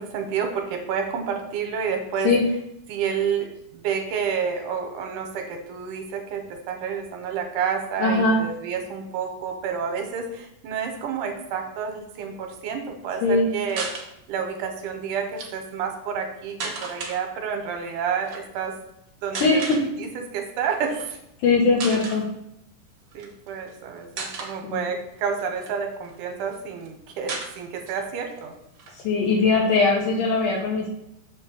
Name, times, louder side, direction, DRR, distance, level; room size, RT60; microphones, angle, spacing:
voice 1, 0.0-2.3 2.9-18.8 19.2-19.6 20.0-20.1 20.3-21.2 23.1-28.5, right 6 dB, 80° right, 4 dB, 2.3 m, -29 dB
voice 2, 8.0-8.4 13.2-13.5 19.3-19.8 21.4-22.2 24.6-24.8 29.0-30.9, left 3 dB, 75° left, -2 dB, 2.5 m, -20 dB
sound 1, 13.7-14.1 15.2-15.5 16.6-17.2 18.2-18.4 19.3-19.8 20.8-21.0 21.4-21.5 21.8-22.2 23.1-23.7 24.2-24.5 25.2-26.2 26.5-26.6 26.8-26.9 27.3-28.0 28.4-28.5 28.7-29.8, right 4 dB, 60° right, 1.3 m, -34 dB
7.2 x 3.1 x 6.1 m, 0.81 s
omnidirectional pair, 3.8 m